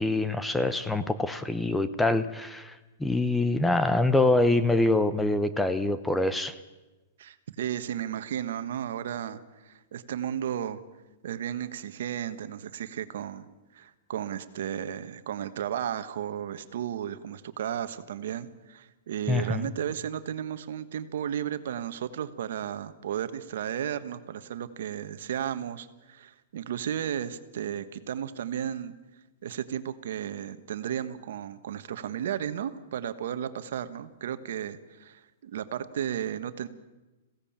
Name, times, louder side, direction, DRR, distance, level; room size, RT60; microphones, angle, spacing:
voice 1, 0.0-2.7 3.0-6.6 19.3-19.7, left 2 dB, 5° left, 12 dB, 0.8 m, -25 dB
voice 2, 7.2-10.8 11.2-28.9 29.4-36.7, right 9 dB, 70° right, 11 dB, 1.3 m, -34 dB
21.5 x 16.5 x 8.8 m, 1.1 s
hypercardioid pair, 150°, 0 cm